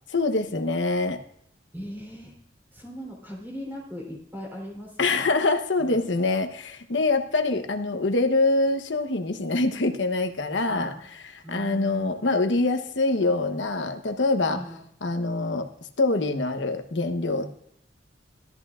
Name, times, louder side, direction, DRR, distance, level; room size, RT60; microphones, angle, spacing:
voice 1, 0.1-1.2 5.0-10.9 11.3-14.6 15.0-15.7 16.0-17.5, left 2 dB, 70° left, 6 dB, 1.0 m, -25 dB
voice 2, 1.7-2.3 2.7-5.3 5.8-6.0 10.7-11.0 11.4-12.1 14.5-14.8, equal, 10° right, -2 dB, 3.6 m, -39 dB
16.0 x 13.0 x 2.5 m, 0.67 s
head